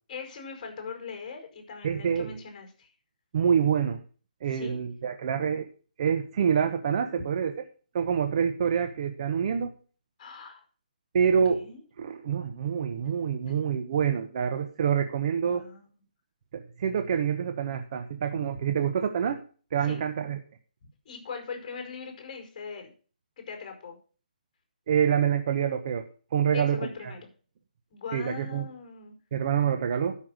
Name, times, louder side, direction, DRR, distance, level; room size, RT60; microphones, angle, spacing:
voice 1, 0.1-2.9 4.5-4.8 10.2-10.6 11.5-11.8 15.4-16.0 19.8-20.0 21.0-22.9 23.4-24.0 26.5-27.2 27.9-29.1, left 5 dB, 35° left, 3 dB, 5.0 m, -40 dB
voice 2, 1.8-2.3 3.3-4.0 4.4-5.7 6.0-7.5 7.9-9.7 11.1-11.6 12.0-15.6 16.5-19.4 19.7-20.4 24.9-27.1 28.1-28.7 29.3-30.2, right 7 dB, 45° right, 7 dB, 1.0 m, -26 dB
12.5 x 5.7 x 6.4 m, 0.40 s
hypercardioid pair, 155°, 5 cm